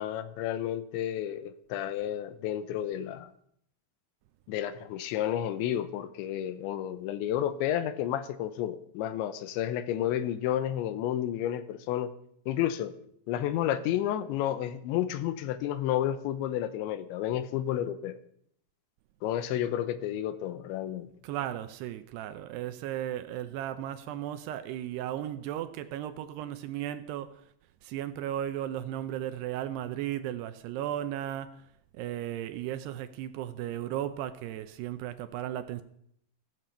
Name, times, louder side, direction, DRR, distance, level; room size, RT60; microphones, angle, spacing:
voice 1, 0.0-3.3 4.5-12.1 12.5-12.9 13.3-18.2 19.2-21.1, left 11 dB, 85° left, 3.2 m, -31 dB
voice 2, 21.2-27.4 27.8-31.5 32.0-35.8, right 12 dB, 80° right, 2.6 m, -35 dB
15.5 x 15.0 x 5.6 m
omnidirectional pair, 5.2 m